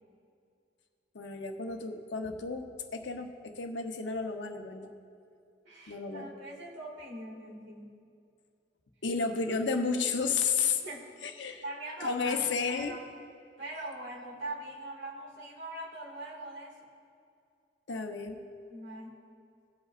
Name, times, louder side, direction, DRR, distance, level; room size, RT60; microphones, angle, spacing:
voice 1, 1.1-4.9 5.9-6.3 9.0-10.8 11.2-11.6 12.0-12.9 17.9-18.4, left 5 dB, 75° left, 5 dB, 0.9 m, -32 dB
voice 2, 5.6-8.0 10.6-11.1 11.6-13.1 13.6-16.8 18.7-19.2, right 1 dB, 75° right, -3 dB, 2.3 m, -42 dB
18.0 x 8.1 x 2.5 m, 2.4 s
head